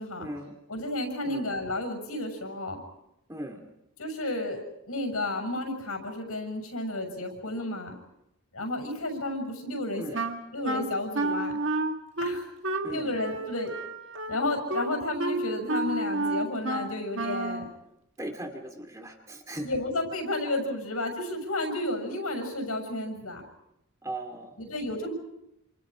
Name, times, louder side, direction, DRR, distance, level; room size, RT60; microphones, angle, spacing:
voice 1, 0.2-0.6 1.2-1.5 3.3-3.6 10.0-10.2 12.8-13.2 18.2-19.7 24.0-24.6, right 1 dB, 15° right, 4 dB, 2.4 m, -38 dB
voice 2, 0.7-2.8 4.0-4.6 4.9-8.0 8.5-10.0 10.5-11.6 12.2-12.5 12.9-13.7 14.3-17.7 19.6-23.4 24.6-25.1, left 1 dB, 85° left, 5 dB, 6.8 m, -32 dB
Wind instrument woodwind instrument, 10.1-17.7, right 2 dB, 55° right, 2.1 m, -31 dB
28.5 x 27.5 x 5.1 m, 0.85 s
head